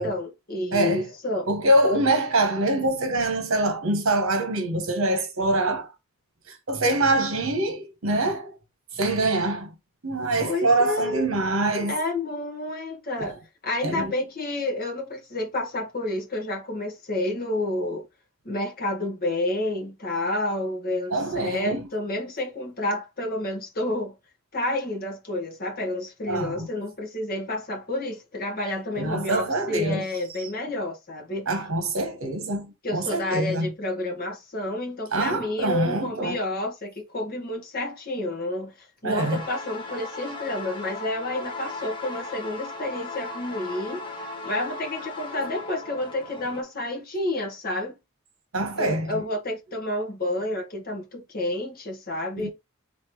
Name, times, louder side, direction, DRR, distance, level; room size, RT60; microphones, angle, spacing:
voice 1, 0.0-1.5 10.4-11.2 11.9-13.4 13.6-18.0 18.4-24.1 24.5-31.5 32.8-38.7 39.0-44.0 44.4-47.9 48.8-52.5, left 1 dB, 45° left, 1.7 m, -30 dB
voice 2, 0.7-1.1 1.5-5.9 6.7-8.6 8.9-9.7 10.0-12.0 13.2-13.3 13.8-14.1 21.1-21.8 26.3-26.7 29.0-30.1 31.5-32.7 32.9-33.7 35.1-36.4 39.0-39.4 48.5-49.2 52.4-52.5, right 2 dB, 65° right, 1.2 m, -24 dB
sound 1, 39.2-46.6, left 2 dB, 25° left, 1.1 m, -37 dB
4.3 x 3.7 x 3.2 m
head